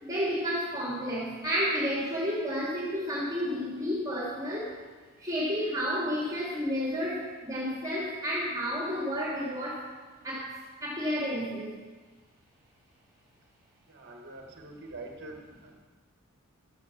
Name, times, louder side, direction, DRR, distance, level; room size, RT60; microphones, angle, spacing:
voice 1, 0.0-4.7 5.2-9.9 10.2-10.5 10.8-11.7, equal, 15° right, -6 dB, 3.3 m, -31 dB
voice 2, 13.9-15.7, right 2 dB, 50° right, 2 dB, 1.9 m, -45 dB
13.0 x 9.7 x 7.6 m, 1.4 s
head